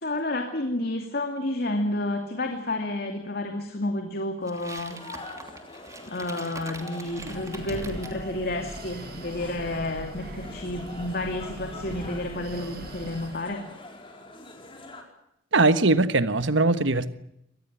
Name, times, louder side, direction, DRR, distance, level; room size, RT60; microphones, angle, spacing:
voice 1, 0.0-5.0 6.1-13.7, left 1 dB, 50° left, 2.6 m, -30 dB
sound 1, 4.4-8.2, right 3 dB, 15° right, 2.8 m, -43 dB
sound 2, 4.9-15.0, left 2 dB, 25° left, 4.7 m, -44 dB
Breathing, 6.9-13.6, right 2 dB, 50° right, 1.1 m, -41 dB
voice 2, 15.5-17.1, right 2 dB, 70° right, 1.3 m, -21 dB
25.0 x 19.0 x 9.3 m
head